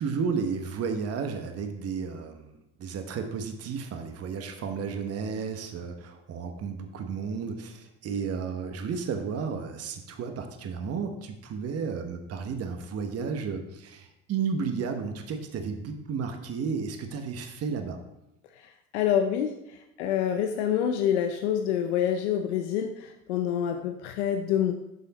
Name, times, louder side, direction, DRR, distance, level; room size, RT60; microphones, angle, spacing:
voice 1, 0.0-18.0, right 5 dB, 45° right, 6 dB, 1.1 m, -33 dB
voice 2, 18.9-19.5 20.0-24.7, left 9 dB, 80° left, 6 dB, 0.6 m, -26 dB
7.9 x 5.6 x 4.1 m, 0.88 s
hypercardioid pair, 70°, 33 cm